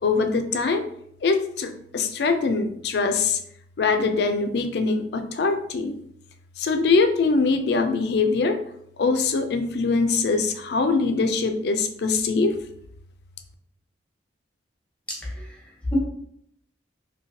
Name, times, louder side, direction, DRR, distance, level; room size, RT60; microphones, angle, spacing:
voice 1, 0.0-0.8 1.2-3.4 3.8-5.9 6.6-8.6 9.0-12.6, left 4 dB, 60° left, 7 dB, 0.4 m, -23 dB
voice 2, 15.1-16.0, left 1 dB, 5° left, -3 dB, 0.8 m, -32 dB
3.0 x 2.7 x 2.7 m, 0.71 s
head